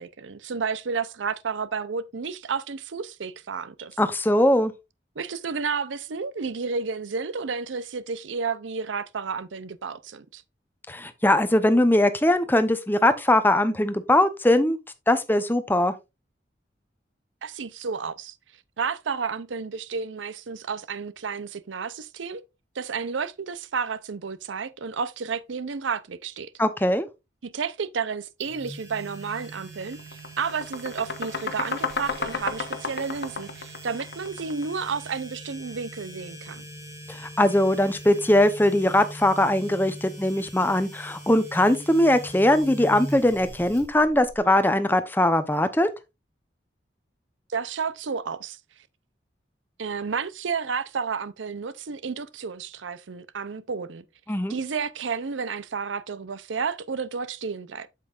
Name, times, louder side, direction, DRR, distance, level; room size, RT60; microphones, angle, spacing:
voice 1, 0.0-4.0 5.2-10.4 17.4-18.3 18.8-22.4 22.7-26.5 27.4-36.6 47.5-48.6 49.8-54.0 54.5-57.9, right 5 dB, 90° right, 0.6 m, -31 dB
voice 2, 4.0-4.7 10.9-14.8 15.1-15.9 26.6-27.1 37.1-45.9 54.3-54.5, left 1 dB, 10° left, 0.7 m, -21 dB
sound 1, 28.4-44.4, right 1 dB, 15° right, 3.7 m, -42 dB
sound 2, 29.3-29.5 29.8-34.8, left 4 dB, 65° left, 1.2 m, -32 dB
8.3 x 7.6 x 2.5 m
head